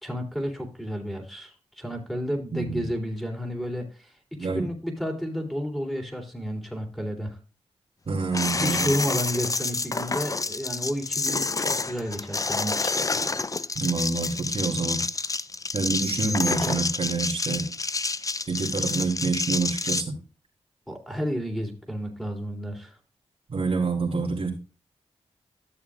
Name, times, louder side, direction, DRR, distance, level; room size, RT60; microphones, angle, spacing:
voice 1, 0.0-7.4 8.5-12.9 20.9-23.0, equal, ahead, 2 dB, 3.3 m, -31 dB
voice 2, 2.5-2.8 4.4-4.6 8.1-8.9 13.8-15.0 15.7-17.6 18.5-20.1 23.5-24.5, right 4 dB, 55° right, 0 dB, 2.6 m, -27 dB
sound 1, 8.3-20.0, left 3 dB, 30° left, 0.5 m, -28 dB
13.5 x 6.8 x 2.5 m, 0.34 s
cardioid pair, 45°, 11 cm